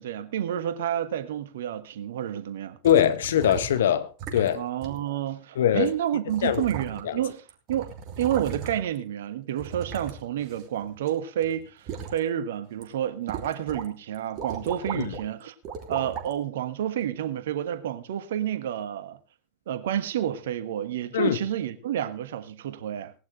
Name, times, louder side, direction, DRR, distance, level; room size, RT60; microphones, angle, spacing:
voice 1, 0.0-2.8 4.5-7.9 8.2-15.5 15.9-19.2 19.7-23.1, right 10 dB, 60° right, 1.4 m, -30 dB
voice 2, 2.8-4.6 5.6-5.9 6.4-6.6 7.0-7.2 14.9-15.1 21.1-21.4, left 10 dB, 60° left, 1.4 m, -22 dB
sound 1, 2.8-3.8 4.2-4.5 4.8-5.0 5.9-6.0 6.3-7.2 7.5-9.0 9.6-11.1 11.4-12.2 12.7-12.8 13.3-13.9 14.1-15.2 15.6-16.3 17.0-17.1, right 6 dB, 35° right, 3.1 m, -37 dB
18.5 x 11.5 x 3.4 m
figure-of-eight pair, 90°, 0 cm